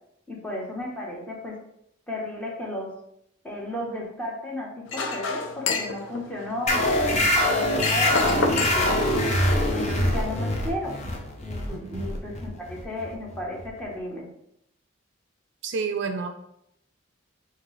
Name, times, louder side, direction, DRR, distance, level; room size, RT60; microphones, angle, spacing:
voice 1, 0.3-1.6 2.1-2.9 3.4-11.0 11.4-14.3, left 1 dB, 5° left, -3 dB, 1.0 m, -34 dB
Chink clink, 4.9-9.9, left 4 dB, 70° left, 0.5 m, -31 dB
sound 1, 6.7-13.8, left 1 dB, 35° left, 0.7 m, -24 dB
voice 2, 11.7-12.1 15.6-16.3, right 5 dB, 60° right, 6 dB, 0.4 m, -30 dB
5.8 x 2.7 x 3.2 m, 0.77 s
head